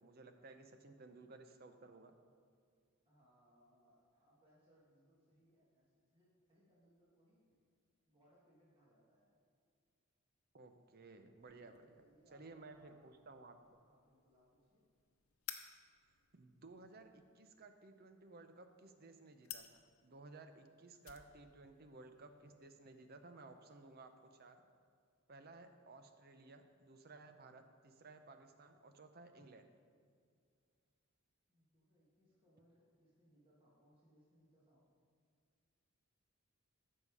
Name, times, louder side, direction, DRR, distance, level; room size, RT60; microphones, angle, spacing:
voice 1, 0.0-2.1 10.5-12.0 12.3-13.6 16.3-24.6 25.3-29.7, right 3 dB, 45° right, 7 dB, 0.7 m, -57 dB
voice 2, 3.1-7.6 8.1-9.3 11.6-12.9 13.8-14.8 31.5-34.9, equal, 25° right, -7 dB, 1.8 m, -71 dB
sound 1, 11.4-24.5, left 10 dB, 70° left, 0.7 m, -58 dB
14.0 x 5.4 x 4.8 m, 2.1 s
head